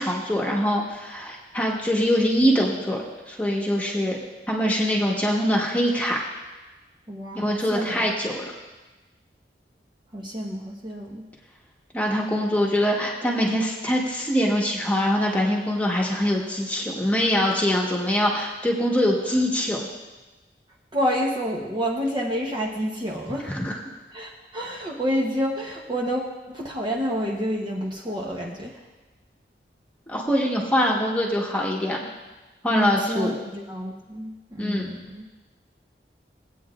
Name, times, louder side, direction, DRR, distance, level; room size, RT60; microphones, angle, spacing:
voice 1, 0.0-3.0 3.3-4.2 4.5-6.2 7.3-8.4 11.9-19.9 23.5-23.7 30.1-32.0 32.6-33.3 34.6-34.9, equal, 10° left, -2 dB, 1.2 m, -23 dB
voice 2, 7.1-8.1 10.1-11.3 20.9-23.6 24.1-28.8 32.7-35.3, equal, 25° right, -2 dB, 0.8 m, -29 dB
18.0 x 8.6 x 2.5 m, 1.2 s
head